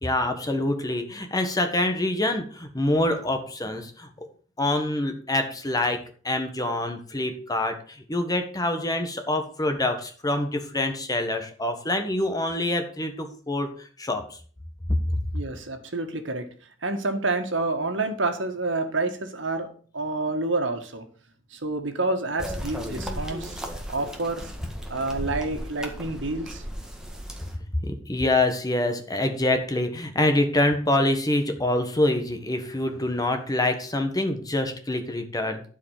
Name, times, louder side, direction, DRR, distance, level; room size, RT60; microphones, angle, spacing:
voice 1, 0.0-4.1 4.6-6.0 6.2-7.8 8.1-13.7 14.0-14.2 27.9-35.6, left 1 dB, 20° left, 6 dB, 1.4 m, -25 dB
voice 2, 15.3-16.5 16.8-21.0 21.5-23.6 23.9-24.5 24.9-26.6, right 2 dB, 75° right, 6 dB, 1.7 m, -28 dB
sound 1, 22.4-27.6, equal, 5° right, 1.7 m, -35 dB
12.5 x 5.0 x 6.6 m, 0.43 s
head